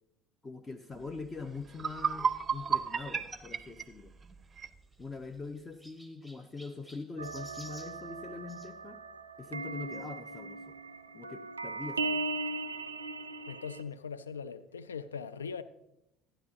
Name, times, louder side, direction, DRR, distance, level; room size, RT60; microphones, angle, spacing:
voice 1, 0.4-4.1 5.0-9.0 9.4-10.7 11.1-12.2, left 4 dB, 25° left, 0.6 m, -43 dB
sound 1, 1.2-1.3 1.7-4.8, right 6 dB, 25° right, 0.6 m, -33 dB
Chirp tweet, 4.4-8.7 9.9-10.1 10.8-10.9 11.1-11.2 12.5-12.6, equal, 5° left, 1.0 m, -56 dB
sound 2, 7.2-13.8, right 3 dB, 85° right, 0.4 m, -38 dB
voice 2, 13.5-15.6, left 6 dB, 80° left, 0.3 m, -40 dB
12.5 x 9.9 x 2.8 m
figure-of-eight pair, 65°, 0 cm